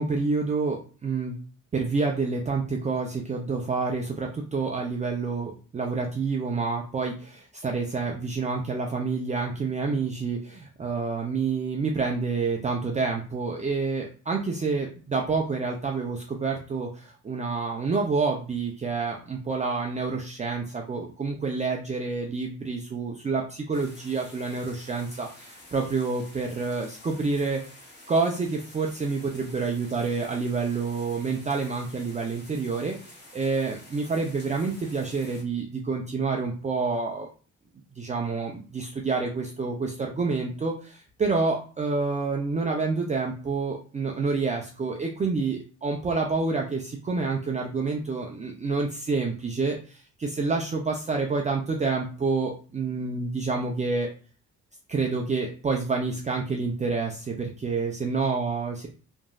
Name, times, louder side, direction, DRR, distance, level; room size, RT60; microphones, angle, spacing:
voice 1, 0.0-1.4 1.7-27.6 28.1-32.9 33.3-37.3 38.0-54.1 54.9-58.9, right 4 dB, 25° right, 0 dB, 0.5 m, -28 dB
sound 1, 23.7-35.4, left 1 dB, 35° left, 1.2 m, -50 dB
3.0 x 2.6 x 2.2 m, 0.38 s
cardioid pair, 90°, 30 cm